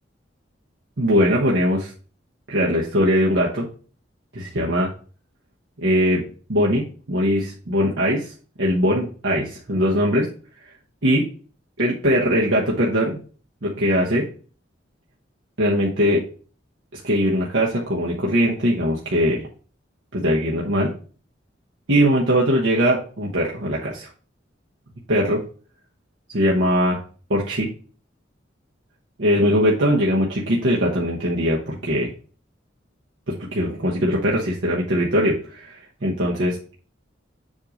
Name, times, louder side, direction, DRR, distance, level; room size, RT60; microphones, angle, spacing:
voice 1, 1.0-1.9 2.5-3.7 4.3-4.9 5.8-6.2 6.5-8.3 8.6-10.3 11.0-11.2 11.8-13.2 13.6-14.3 15.6-16.2 16.9-19.4 20.1-20.9 21.9-24.1 25.1-25.4 26.3-27.0 27.3-27.7 29.2-32.1 33.3-36.6, equal, 75° right, -4 dB, 1.1 m, -21 dB
7.4 x 2.8 x 5.1 m, 0.40 s
head